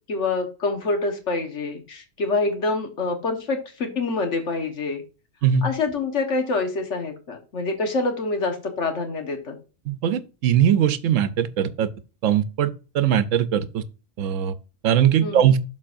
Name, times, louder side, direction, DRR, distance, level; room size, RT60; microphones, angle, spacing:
voice 1, 0.1-5.0 5.6-9.6 15.2-15.4, left 3 dB, 70° left, 1.5 m, -26 dB
voice 2, 9.9-11.9 12.2-12.7 12.9-13.8 14.2-14.5 14.8-15.6, right 9 dB, 85° right, 1.0 m, -20 dB
12.0 x 4.0 x 2.5 m
omnidirectional pair, 1.3 m